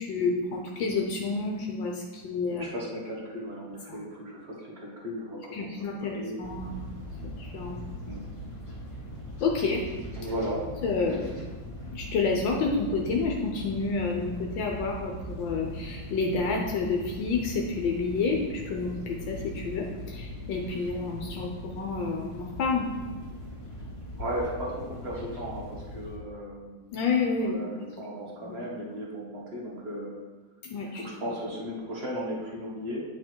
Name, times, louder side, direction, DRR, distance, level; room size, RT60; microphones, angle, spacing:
voice 1, 0.0-2.7 3.9-4.0 5.5-6.7 7.4-7.8 9.4-9.8 10.8-11.3 11.9-22.9 26.9-27.6 28.4-28.5 30.7-31.0, left 4 dB, 75° left, 0 dB, 1.5 m, -29 dB
voice 2, 2.5-6.4 8.1-8.2 10.1-10.6 24.2-26.8 27.4-30.1 30.9-33.0, equal, 35° right, -3 dB, 1.5 m, -36 dB
sound 1, 6.4-26.2, equal, 15° left, 1.8 m, -40 dB
8.6 x 4.9 x 4.5 m, 1.3 s
omnidirectional pair, 2.1 m